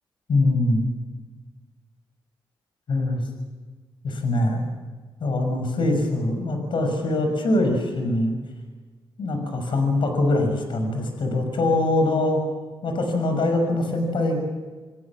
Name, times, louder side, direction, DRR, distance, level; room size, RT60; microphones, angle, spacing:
voice 1, 0.3-0.9 2.9-3.2 4.0-4.6 5.2-8.3 9.2-12.4 12.8-14.4, left 2 dB, 65° left, 5 dB, 6.4 m, -23 dB
28.5 x 18.5 x 7.5 m, 1.4 s
cardioid pair, 95°, 9 cm